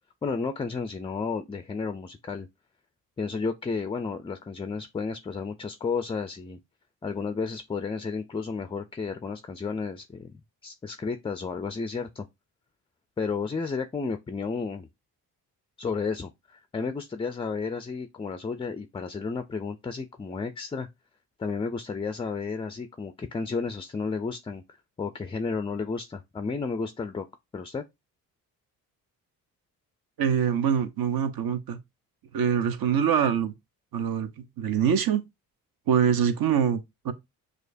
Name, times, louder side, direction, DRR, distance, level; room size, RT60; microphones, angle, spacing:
voice 1, 0.2-2.5 3.2-6.6 7.0-12.3 13.2-14.9 15.8-20.9 21.4-27.3 27.5-27.8, left 4 dB, 15° left, 0.3 m, -32 dB
voice 2, 30.2-31.8 32.3-33.5 33.9-35.2 35.9-37.1, right 8 dB, 60° right, 0.7 m, -24 dB
6.3 x 2.4 x 2.5 m
supercardioid pair, 65°, 40 cm